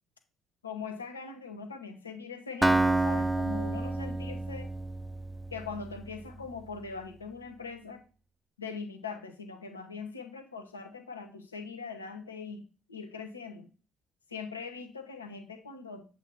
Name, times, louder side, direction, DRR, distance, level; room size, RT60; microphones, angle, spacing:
voice 1, 0.6-4.7 5.5-8.0 8.6-13.7 14.3-16.1, left 5 dB, 85° left, 6 dB, 0.8 m, -41 dB
Acoustic guitar, 2.6-6.5, right 2 dB, 10° right, 0.3 m, -29 dB
7.9 x 2.7 x 4.4 m, 0.34 s
figure-of-eight pair, 50°, 0 cm